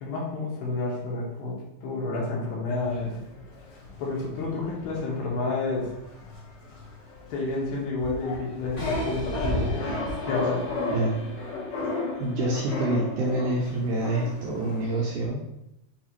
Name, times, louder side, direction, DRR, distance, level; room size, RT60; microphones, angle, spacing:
voice 1, 0.0-3.1 4.0-5.9 7.3-10.6, left 3 dB, 80° left, -4 dB, 2.9 m, -30 dB
sound 1, 2.7-15.0, left 2 dB, 65° left, 2.7 m, -34 dB
sound 2, 8.8-14.7, left 2 dB, 40° left, 1.3 m, -45 dB
voice 2, 10.8-11.2 12.2-15.4, right 2 dB, 85° right, -3 dB, 1.8 m, -27 dB
6.5 x 2.4 x 2.9 m, 0.84 s
omnidirectional pair, 4.2 m